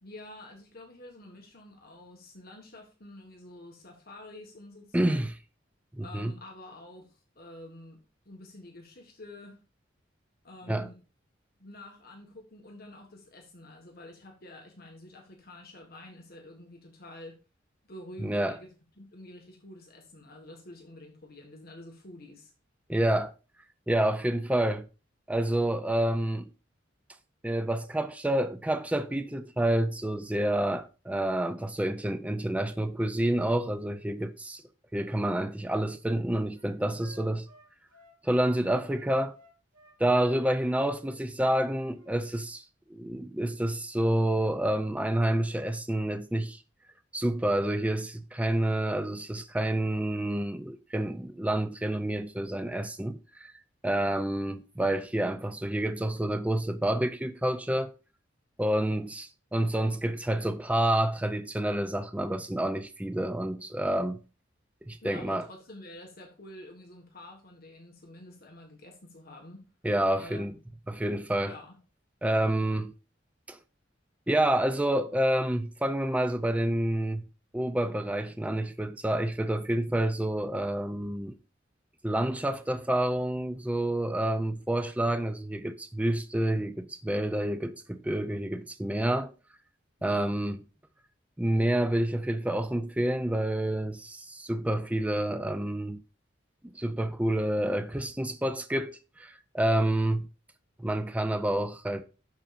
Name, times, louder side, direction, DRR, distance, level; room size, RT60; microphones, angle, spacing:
voice 1, 0.0-5.3 6.0-9.6 10.4-11.0 11.6-17.4 17.9-18.7 19.0-22.5 65.0-69.6 70.1-70.6 71.4-71.7 90.0-90.3, left 1 dB, 55° left, 1.5 m, -48 dB
voice 2, 4.9-5.3 6.0-6.3 10.7-10.9 18.2-18.6 22.9-23.3 23.9-24.9 25.3-26.5 27.4-34.6 34.9-37.5 38.2-39.4 40.0-46.6 47.1-53.5 53.8-57.9 58.6-64.2 64.9-65.5 69.8-70.5 70.9-71.5 72.2-72.9 73.5-73.6 74.3-77.2 77.5-81.3 82.0-89.3 90.0-90.6 91.4-96.0 96.7-100.3 100.8-102.0, right 1 dB, 5° right, 0.5 m, -28 dB
Wind instrument woodwind instrument, 35.6-38.6 38.9-42.1, equal, 85° right, 4.3 m, -56 dB
12.5 x 4.4 x 2.5 m
head